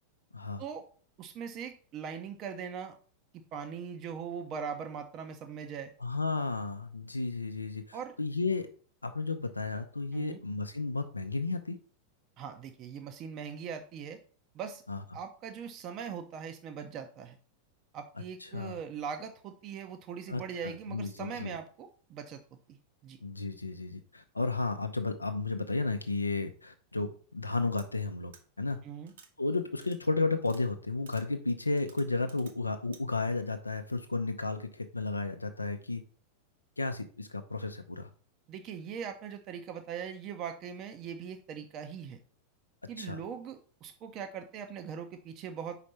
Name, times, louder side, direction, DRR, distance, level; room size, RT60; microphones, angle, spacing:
voice 1, 1.2-3.0 3.3-5.9 7.9-8.1 10.1-10.4 12.4-14.2 14.5-14.8 15.1-17.4 17.9-22.4 22.7-22.8 23.0-23.2 28.8-29.1 38.5-42.2 42.9-45.8, right 7 dB, 35° right, 6 dB, 0.6 m, -40 dB
voice 2, 6.0-8.7 9.0-11.8 14.9-15.0 18.4-18.8 20.3-21.6 23.2-28.8 29.4-36.0 36.8-38.1 43.0-43.2, left 3 dB, 80° left, 7 dB, 0.5 m, -33 dB
sound 1, 27.8-27.9 28.3-28.4 29.1-29.3 29.8-30.0 30.4-30.6 31.1-31.2 31.8-32.5 32.9-33.0, right 6 dB, 65° right, 1.1 m, -54 dB
5.2 x 4.1 x 5.6 m, 0.44 s
figure-of-eight pair, 90°, 0 cm